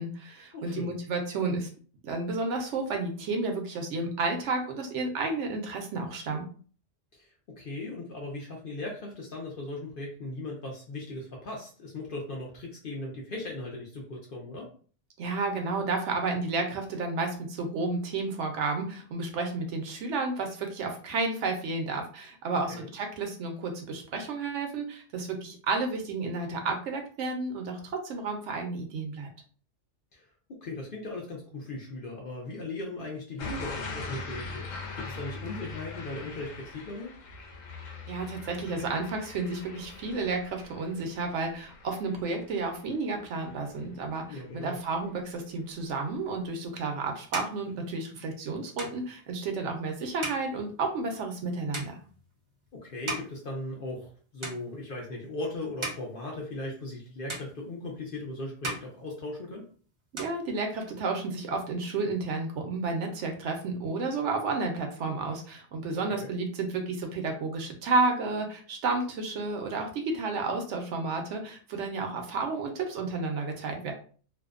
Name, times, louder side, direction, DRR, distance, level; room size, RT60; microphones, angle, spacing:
voice 1, 0.0-1.7 2.0-6.5 15.2-29.3 38.1-52.0 60.1-73.9, right 3 dB, 70° right, 3 dB, 0.9 m, -31 dB
voice 2, 0.5-0.9 7.1-14.7 22.7-22.9 30.1-37.1 44.3-44.8 52.7-59.6 65.9-66.3, left 2 dB, 60° left, -1 dB, 0.6 m, -38 dB
sound 1, 33.4-44.2 44.6-45.0, left 3 dB, 85° left, 1.0 m, -42 dB
sound 2, 46.5-54.1 54.4-55.1 55.5-57.0 57.3-58.2 58.5-59.7 60.0-61.1, right 2 dB, 30° right, 0.6 m, -40 dB
2.5 x 2.1 x 2.4 m, 0.42 s
omnidirectional pair, 1.3 m